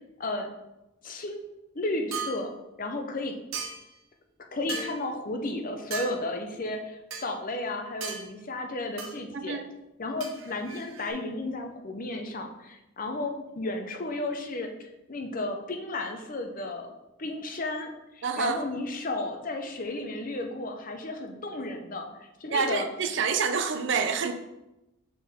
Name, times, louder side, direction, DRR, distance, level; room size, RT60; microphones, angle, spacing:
voice 1, 0.2-0.5 1.0-1.4 1.7-2.5 2.8-3.3 4.5-9.6 10.0-14.7 15.1-16.9 17.2-22.9, left 2 dB, 40° left, 4 dB, 0.6 m, -33 dB
sound 1, 2.1-2.4 3.5-4.0 4.7-5.0 5.9-6.1 7.1-7.3 8.0-8.2 9.0-9.1 10.2-11.1, right 5 dB, 75° right, 0.9 m, -36 dB
voice 2, 9.3-9.7 18.2-18.6 22.5-24.3, right 5 dB, 55° right, 9 dB, 0.5 m, -27 dB
6.3 x 4.2 x 3.5 m, 0.94 s
head